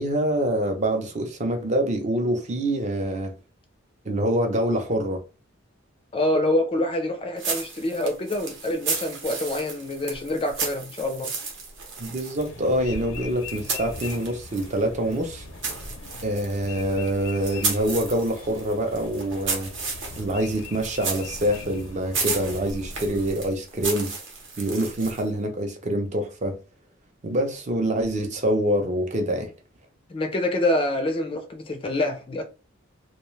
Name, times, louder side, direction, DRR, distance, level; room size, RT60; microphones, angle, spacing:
voice 1, 0.0-3.3 4.0-5.2 12.0-15.4 16.2-19.7 20.2-24.1 24.6-26.6 27.2-29.5, right 1 dB, 35° right, 0.5 m, -25 dB
voice 2, 6.1-11.3 30.1-32.4, left 1 dB, 25° left, 0.3 m, -26 dB
sound 1, 7.4-14.8 15.1-25.4, right 4 dB, 65° right, 0.8 m, -33 dB
sound 2, 12.4-23.3, left 4 dB, 90° left, 0.5 m, -41 dB
2.3 x 2.2 x 3.1 m
head